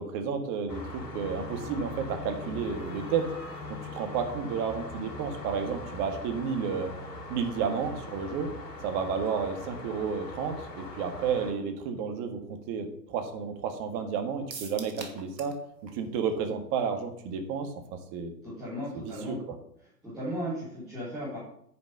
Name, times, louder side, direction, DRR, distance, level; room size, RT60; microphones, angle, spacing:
voice 1, 0.0-3.3 3.9-6.9 7.3-8.5 8.8-15.6 15.9-18.3 18.9-19.4, right 6 dB, 35° right, 6 dB, 1.8 m, -31 dB
sound 1, 0.7-11.5, left 2 dB, 70° left, 3.0 m, -41 dB
sound 2, 14.5-15.6 15.9-16.0 16.3-16.4, right 4 dB, 80° right, 1.9 m, -42 dB
voice 2, 18.4-19.4 20.0-21.4, equal, ahead, -17 dB, 0.3 m, -36 dB
9.9 x 5.0 x 6.8 m, 0.70 s
figure-of-eight pair, 115°, 50 cm